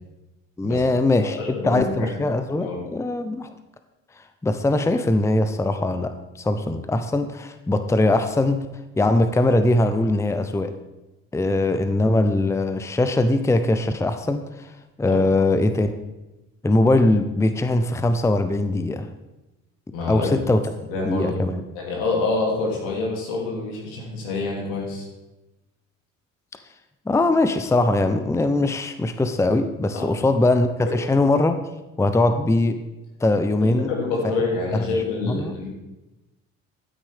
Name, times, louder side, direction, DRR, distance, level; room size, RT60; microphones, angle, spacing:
voice 1, 0.6-3.5 4.4-8.7 9.0-10.7 11.3-14.7 15.0-15.9 16.6-19.1 20.1-20.7 21.0-21.6 27.1-31.6 32.0-32.8 33.2-33.9 34.7-34.9 35.2-35.5, left 2 dB, 5° left, 9 dB, 0.7 m, -21 dB
voice 2, 1.2-2.1 2.5-2.8 15.1-15.3 19.9-20.3 20.9-21.4 21.7-25.1 29.9-30.1 30.8-30.9 33.6-35.7, left 3 dB, 75° left, -2 dB, 2.9 m, -27 dB
12.0 x 9.6 x 3.6 m, 1.0 s
hypercardioid pair, 55°, 38 cm